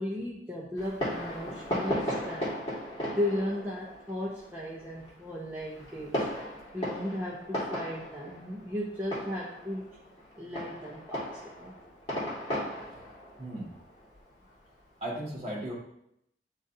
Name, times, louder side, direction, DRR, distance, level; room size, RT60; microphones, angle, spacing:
voice 1, 0.0-2.5 3.1-6.3 6.7-10.0 10.4-11.8, left 1 dB, 10° right, -6 dB, 0.8 m, -35 dB
Fireworks, 0.8-14.9, equal, 30° left, 2.0 m, -37 dB
voice 2, 13.4-13.7 15.0-15.7, right 1 dB, 35° right, -5 dB, 1.9 m, -36 dB
10.0 x 4.0 x 2.7 m, 0.77 s
head